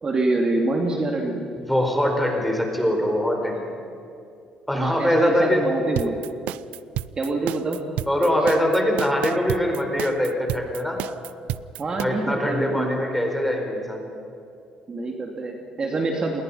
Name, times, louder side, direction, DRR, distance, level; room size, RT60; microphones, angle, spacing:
voice 1, 0.0-1.5 4.7-6.2 7.2-7.8 8.4-8.5 11.8-13.0 14.9-16.4, right 2 dB, 35° right, 1 dB, 2.7 m, -26 dB
voice 2, 1.7-3.6 4.7-5.6 8.1-11.0 12.0-14.1, equal, 5° left, 2 dB, 4.6 m, -22 dB
sound 1, 6.0-12.0, right 14 dB, 85° right, 0.5 m, -31 dB
28.5 x 21.0 x 5.8 m, 2.5 s
cardioid pair, 90°, 2 cm